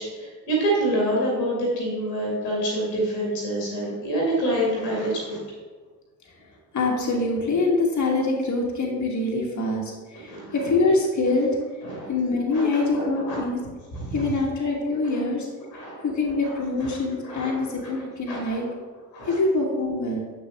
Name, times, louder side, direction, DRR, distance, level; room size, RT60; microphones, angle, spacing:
voice 1, 0.0-5.4 10.3-10.6 11.8-12.1 12.5-13.4 13.9-14.3 15.7-16.0 16.8-16.9 17.2-17.5 18.3-18.6 19.1-19.4, right 1 dB, 80° left, -3 dB, 2.3 m, -27 dB
voice 2, 6.7-11.5 12.1-13.6 14.1-15.5 16.0-18.6 19.3-20.3, left 3 dB, 35° left, -1 dB, 1.6 m, -24 dB
8.0 x 6.3 x 3.4 m, 1.5 s
figure-of-eight pair, 45°, 48 cm